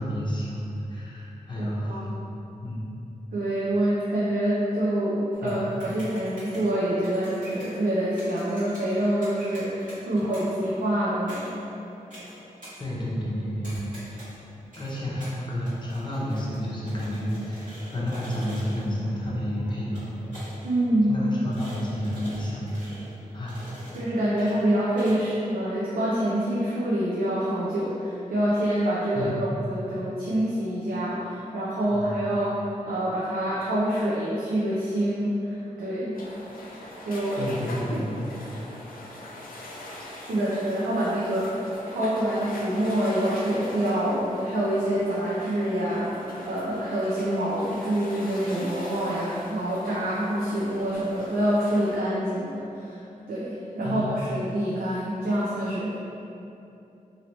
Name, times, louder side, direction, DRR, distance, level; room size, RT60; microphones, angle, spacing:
voice 1, 0.0-2.1 2.6-2.9 5.4-5.7 12.8-14.2 14.7-20.2 21.1-22.8 23.3-23.7 29.1-29.5 31.9-32.2 37.3-38.2 53.8-54.1, equal, 30° left, -6 dB, 0.8 m, -31 dB
voice 2, 1.6-2.2 3.3-11.6 20.6-21.2 21.4-21.5 23.9-36.1 37.0-37.4 37.9-38.0 40.2-46.1 46.5-53.0 53.3-55.9, right 1 dB, 80° right, -8 dB, 0.6 m, -26 dB
sound 1, 5.3-25.1, equal, 65° right, 1.4 m, -46 dB
sound 2, 36.1-52.0, left 1 dB, 80° left, 0.4 m, -41 dB
2.9 x 2.8 x 3.0 m, 2.8 s
wide cardioid pair, 85°, 14 cm